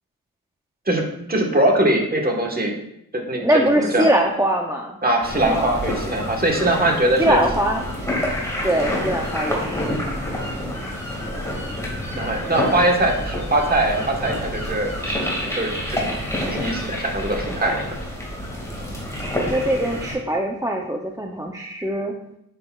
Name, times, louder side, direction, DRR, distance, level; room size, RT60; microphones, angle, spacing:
voice 1, 1.3-2.7 3.3-4.0 5.0-7.4 12.1-16.1 16.5-18.0, right 1 dB, 25° right, 1 dB, 1.2 m, -21 dB
voice 2, 3.4-5.0 5.4-5.8 7.2-7.8 8.6-10.0 19.4-22.1, right 1 dB, 10° right, 1 dB, 0.5 m, -22 dB
sound 1, 5.2-20.1, left 1 dB, 10° left, 1.8 m, -28 dB
8.5 x 6.5 x 2.3 m, 0.77 s
wide cardioid pair, 115°, 34 cm